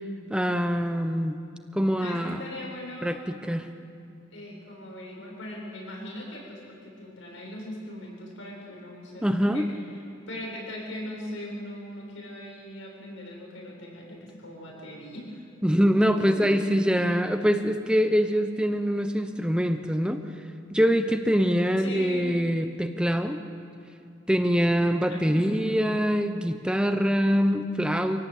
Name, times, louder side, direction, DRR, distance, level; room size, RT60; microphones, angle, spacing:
voice 1, 0.3-1.4 1.7-2.4 3.0-3.7 9.2-9.7 15.6-20.2 20.7-23.4 24.3-28.2, equal, 5° right, 7 dB, 0.8 m, -24 dB
voice 2, 2.0-3.2 4.3-9.7 10.3-15.5 15.8-15.9 16.1-16.5 21.8-22.4 25.1-25.8, left 1 dB, 75° left, -2 dB, 7.9 m, -40 dB
26.0 x 18.0 x 8.4 m, 2.4 s
head